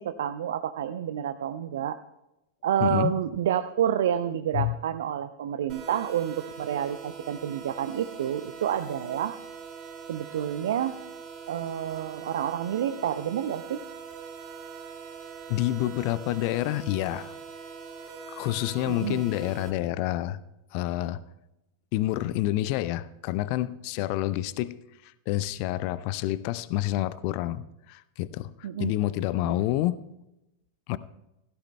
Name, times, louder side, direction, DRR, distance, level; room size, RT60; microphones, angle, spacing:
voice 1, 0.0-2.0 2.6-9.4 10.1-11.0 11.5-13.8 18.9-19.2 28.6-28.9 29.4-29.6, right 10 dB, 60° right, 12 dB, 0.4 m, -29 dB
voice 2, 2.8-3.1 4.5-4.7 15.5-17.4 18.3-20.4 20.7-21.2 21.9-24.7 25.3-28.5 28.8-30.0 30.9-31.0, left 15 dB, 45° left, 17 dB, 0.5 m, -28 dB
sound 1, 5.7-19.7, right 6 dB, 40° right, 2.3 m, -42 dB
17.0 x 14.5 x 2.2 m, 0.91 s
figure-of-eight pair, 90°, 0 cm